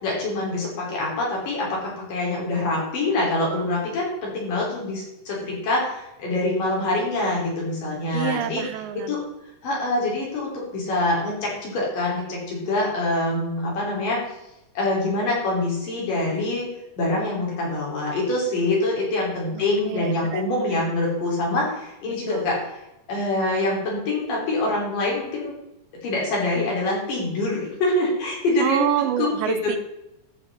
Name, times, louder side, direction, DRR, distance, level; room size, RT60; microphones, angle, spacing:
voice 1, 0.0-8.6 9.1-9.2 9.6-14.2 14.7-16.7 17.0-22.8 23.1-25.5 26.0-28.9 29.2-29.7, left 2 dB, 65° left, -3 dB, 5.0 m, -25 dB
voice 2, 8.1-9.2 19.5-20.5 22.3-22.5 28.6-29.8, right 11 dB, 80° right, 10 dB, 2.2 m, -27 dB
13.5 x 6.8 x 4.2 m, 0.89 s
omnidirectional pair, 4.1 m